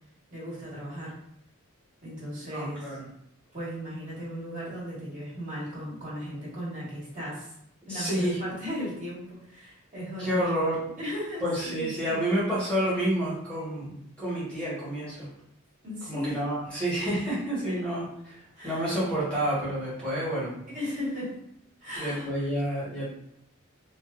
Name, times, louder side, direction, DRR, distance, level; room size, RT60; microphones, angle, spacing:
voice 1, 0.3-1.1 2.0-2.9 3.5-7.5 7.9-12.2 15.8-16.4 18.5-18.8 20.7-21.4 21.8-22.4, equal, 40° right, -8 dB, 1.4 m, -36 dB
voice 2, 2.5-3.0 7.9-8.4 10.2-10.8 11.4-15.3 16.1-20.6 21.9-23.1, right 1 dB, 5° left, -10 dB, 1.1 m, -29 dB
3.1 x 2.5 x 2.4 m, 0.73 s
head